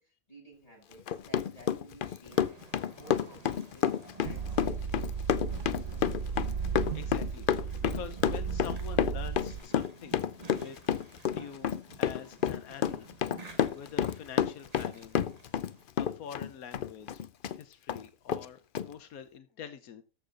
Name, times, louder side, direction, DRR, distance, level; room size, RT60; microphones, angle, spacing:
voice 1, 0.0-2.4 2.9-5.3, right 1 dB, 25° left, -3 dB, 7.5 m, -55 dB
Run, 0.9-15.7 16.0-17.6 17.9-18.0 18.3-18.4 18.7-18.9, left 9 dB, 55° left, 0.6 m, -29 dB
sound 1, 2.3-15.8, right 3 dB, 30° right, 1.3 m, -52 dB
sound 2, 4.3-9.6, right 6 dB, 65° right, 1.1 m, -35 dB
voice 2, 6.7-10.8 11.0-11.7 12.0-15.2 15.9-17.2 17.6-20.0, left 8 dB, 90° left, 9 dB, 1.3 m, -46 dB
13.5 x 6.9 x 3.8 m, 0.32 s
omnidirectional pair, 1.5 m